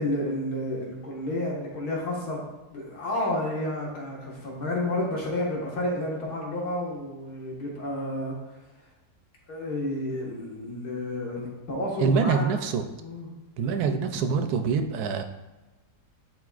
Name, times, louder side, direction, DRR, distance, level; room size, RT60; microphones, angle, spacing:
voice 1, 0.0-2.4 2.7-8.4 9.5-12.6 13.0-13.3, left 1 dB, 70° left, -3 dB, 2.1 m, -31 dB
voice 2, 12.0-12.8 13.6-15.2, right 5 dB, 75° right, 7 dB, 1.1 m, -25 dB
11.0 x 4.0 x 2.4 m, 1.1 s
omnidirectional pair, 1.7 m